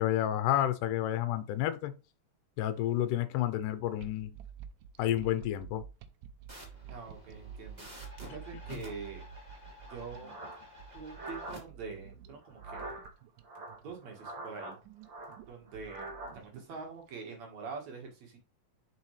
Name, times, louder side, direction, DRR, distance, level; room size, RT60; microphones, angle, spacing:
voice 1, 0.0-1.9 2.6-4.4 5.0-5.9 8.7-8.8, left 12 dB, 75° left, 2.1 m, -30 dB
sound 1, 4.0-17.1, right 7 dB, 75° right, 2.2 m, -50 dB
sound 2, 6.5-11.6, left 1 dB, 15° right, 1.6 m, -51 dB
voice 2, 6.9-7.9 8.2-9.5 9.9-10.4 10.9-12.9 13.8-14.8 15.5-18.4, right 5 dB, 60° right, 2.6 m, -45 dB
sound 3, 9.9-11.6 12.4-13.1 13.4-14.7 15.0-16.3, right 2 dB, 40° right, 2.0 m, -44 dB
7.0 x 5.6 x 3.2 m
omnidirectional pair, 4.0 m